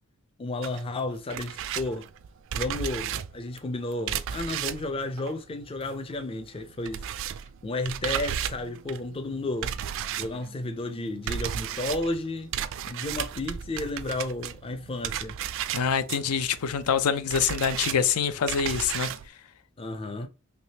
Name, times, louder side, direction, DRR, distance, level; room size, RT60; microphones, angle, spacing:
voice 1, 0.4-2.1 2.5-7.0 7.6-9.8 10.2-12.5 12.9-15.4 19.8-20.3, left 2 dB, 25° left, 0.4 m, -32 dB
sound 1, 0.6-6.2 6.4-19.3, right 9 dB, 60° right, 0.3 m, -34 dB
voice 2, 15.7-19.1, left 7 dB, 85° left, 0.5 m, -25 dB
3.3 x 3.0 x 2.8 m
head